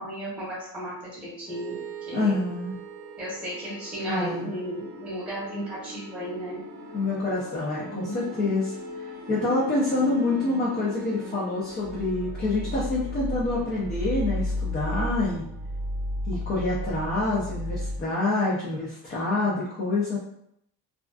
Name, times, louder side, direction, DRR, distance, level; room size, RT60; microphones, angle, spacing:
voice 1, 0.0-1.8 2.1-2.4 3.2-6.6 7.9-8.5, equal, 5° right, -8 dB, 0.8 m, -34 dB
sound 1, 1.5-18.0, equal, 85° right, 0.5 m, -35 dB
voice 2, 2.1-2.7 4.1-4.5 6.9-8.7 9.3-15.5 16.3-20.2, left 2 dB, 25° left, -6 dB, 0.4 m, -27 dB
2.4 x 2.3 x 2.3 m, 0.74 s
cardioid pair, 155°, 39 cm